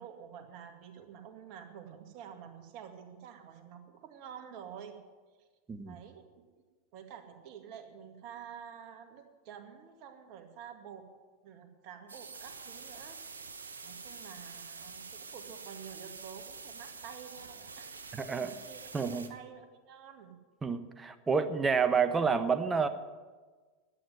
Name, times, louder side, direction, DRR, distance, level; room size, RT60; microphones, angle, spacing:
voice 1, 0.0-5.0 5.8-6.5 6.9-11.1 11.4-13.4 13.8-20.4, right 8 dB, 55° right, 5 dB, 2.0 m, -49 dB
sound 1, 12.1-19.3, right 4 dB, 90° right, 1.1 m, -47 dB
voice 2, 18.1-18.5 18.9-19.3 20.6-22.9, right 5 dB, 20° right, 10 dB, 1.2 m, -29 dB
11.5 x 9.2 x 9.3 m, 1.4 s
hypercardioid pair, 90°, 0 cm